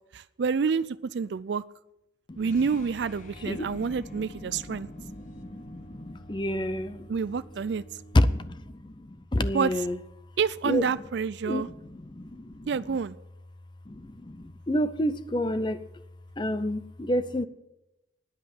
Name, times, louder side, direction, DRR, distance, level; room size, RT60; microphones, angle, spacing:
voice 1, 0.1-1.6 2.4-4.9 7.1-7.8 9.5-9.7 10.4-11.7 12.7-13.1, right 5 dB, 65° right, 0.4 m, -28 dB
voice 2, 2.3-2.8 3.4-7.1 8.1-10.0 10.6-11.0 11.4-13.0 13.9-15.8 16.4-17.5, left 1 dB, 25° left, 0.6 m, -30 dB
sound 1, 2.4-8.5, equal, 40° left, 1.3 m, -49 dB
9.9 x 8.5 x 8.7 m
head